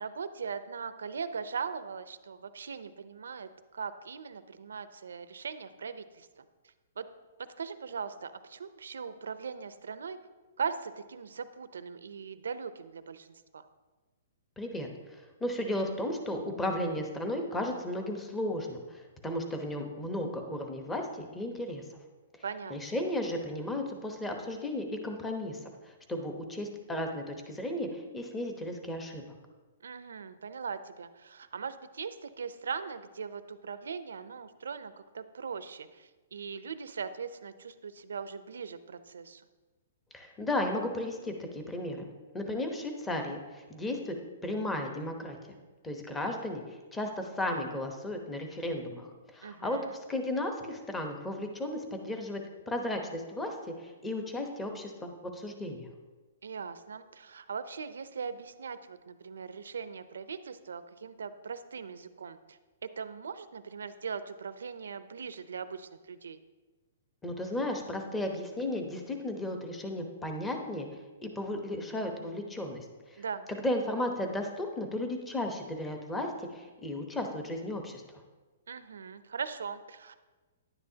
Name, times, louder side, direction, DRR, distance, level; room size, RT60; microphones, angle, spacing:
voice 1, 0.0-6.3 7.0-7.1 7.6-10.2 10.6-13.6 22.4-22.9 29.8-39.4 49.4-50.0 56.4-66.4 73.2-73.5 78.7-80.2, right 6 dB, 90° right, 12 dB, 0.6 m, -40 dB
voice 2, 14.6-21.8 22.7-29.2 40.1-44.2 44.4-45.5 45.8-52.4 52.7-55.9 67.2-70.9 71.2-73.2 73.6-78.0, left 1 dB, 10° left, 4 dB, 0.9 m, -35 dB
10.5 x 9.8 x 2.8 m, 1.2 s
hypercardioid pair, 155°, 0 cm